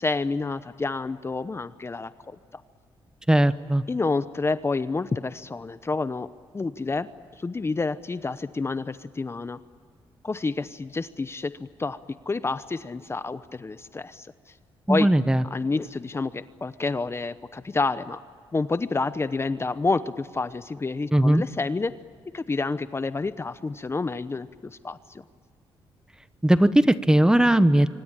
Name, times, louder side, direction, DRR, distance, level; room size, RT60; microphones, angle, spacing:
voice 1, 0.0-2.6 3.9-6.3 6.5-7.1 7.4-9.6 10.2-11.5 11.8-12.0 12.3-14.3 14.9-15.1 15.5-18.2 18.5-21.9 22.3-25.2, left 3 dB, 25° left, 13 dB, 0.9 m, -29 dB
voice 2, 3.3-3.8 14.9-15.4 21.1-21.4 26.4-27.9, right 1 dB, 10° right, 13 dB, 1.0 m, -18 dB
25.5 x 25.0 x 8.9 m, 2.1 s
cardioid pair, 90°, 10 cm